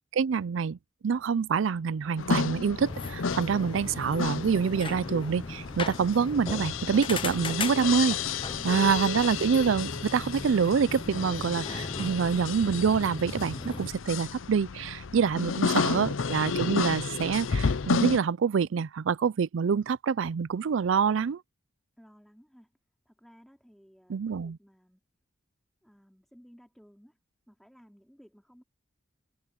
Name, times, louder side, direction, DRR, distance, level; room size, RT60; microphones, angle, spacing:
voice 1, 0.1-0.8 1.0-8.2 8.6-21.4 24.1-24.6, right 6 dB, 70° right, 0.4 m, -26 dB
sound 1, 2.2-18.2, left 5 dB, 80° left, 0.7 m, -32 dB
sound 2, 2.8-13.9, left 3 dB, 25° left, 0.8 m, -38 dB
voice 2, 22.0-22.7 23.1-25.0 25.8-27.2 27.5-28.6, equal, ahead, 3.9 m, -56 dB
head